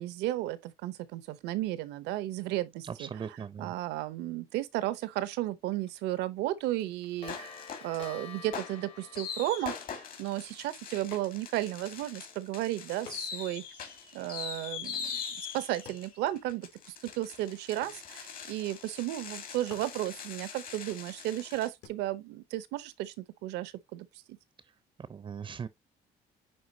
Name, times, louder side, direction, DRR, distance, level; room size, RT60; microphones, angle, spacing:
voice 1, 0.0-13.6 14.1-24.4, right 15 dB, 90° right, 0.8 m, -34 dB
voice 2, 2.9-3.7 25.1-25.7, right 6 dB, 30° right, 0.5 m, -39 dB
Clock, 5.3-5.4 5.7-5.9 6.2-6.3 6.6-10.6, left 7 dB, 35° left, 1.0 m, -49 dB
sound 1, 7.3-8.1 8.5-21.7, left 6 dB, 60° left, 2.7 m, -42 dB
sound 2, 11.1-11.7 12.0-12.1 13.1-17.0 17.3-18.5 19.2-19.3 19.6-21.9, left 7 dB, 75° left, 2.7 m, -55 dB
9.8 x 3.8 x 2.7 m
cardioid pair, 110°, 17 cm